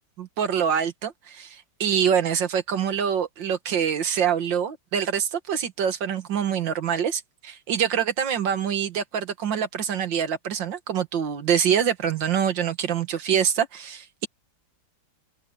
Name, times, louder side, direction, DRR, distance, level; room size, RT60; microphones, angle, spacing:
voice 1, 0.2-14.3, right 8 dB, 70° right, 2.2 m, -25 dB
open air
omnidirectional pair, 2.1 m